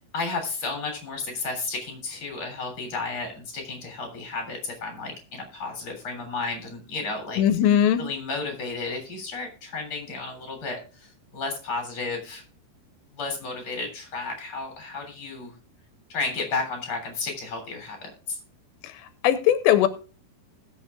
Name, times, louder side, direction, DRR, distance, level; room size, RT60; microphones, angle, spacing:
voice 1, 0.1-7.4 8.0-12.4 13.1-15.5 16.1-18.4, left 3 dB, 30° left, 3 dB, 3.8 m, -32 dB
voice 2, 7.4-8.0 18.8-18.9 19.2-19.9, left 10 dB, 85° left, 10 dB, 3.0 m, -19 dB
20.5 x 7.0 x 2.4 m, 0.37 s
omnidirectional pair, 5.0 m